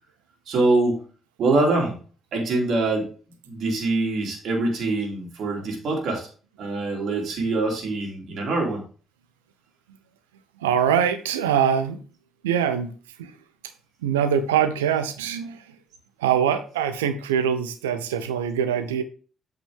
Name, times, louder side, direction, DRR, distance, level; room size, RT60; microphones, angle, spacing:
voice 1, 0.5-1.0 1.4-2.0 2.3-3.1 3.5-6.3 6.6-8.8, right 2 dB, 60° right, 3.1 m, -24 dB
voice 2, 10.6-12.0 12.4-12.9 14.0-15.6 16.2-19.0, right 8 dB, 85° right, 0.8 m, -23 dB
8.2 x 6.0 x 3.5 m
hypercardioid pair, 45°, 0 cm